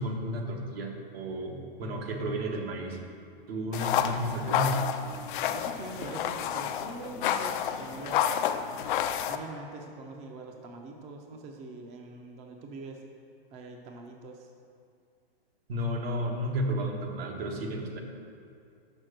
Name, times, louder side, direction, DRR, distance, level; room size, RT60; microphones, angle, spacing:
voice 1, 0.0-3.0 3.5-4.9 15.7-18.0, equal, 75° right, 1 dB, 1.4 m, -32 dB
sound 1, 3.7-9.4, left 9 dB, 55° left, 0.5 m, -30 dB
voice 2, 5.5-8.3 9.3-13.0 13.5-14.5, right 3 dB, 25° right, 2 dB, 0.6 m, -43 dB
6.2 x 5.7 x 6.5 m, 2.4 s
hypercardioid pair, 140°, 30 cm